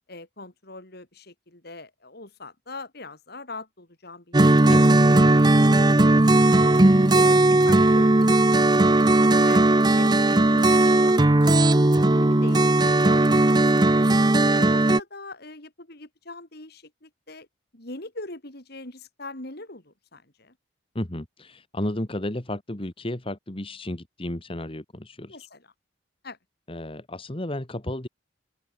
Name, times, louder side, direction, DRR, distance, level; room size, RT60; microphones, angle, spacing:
voice 1, 0.1-6.2 6.5-9.6 9.9-12.7 13.0-13.4 13.6-14.2 14.5-17.5 17.7-20.5 25.3-25.7 26.2-26.4, left 2 dB, 55° left, 4.3 m, -42 dB
sound 1, 4.3-15.0, right 2 dB, 20° right, 0.7 m, -17 dB
voice 2, 21.0-25.4 26.7-28.1, left 1 dB, 30° left, 1.7 m, -32 dB
open air
head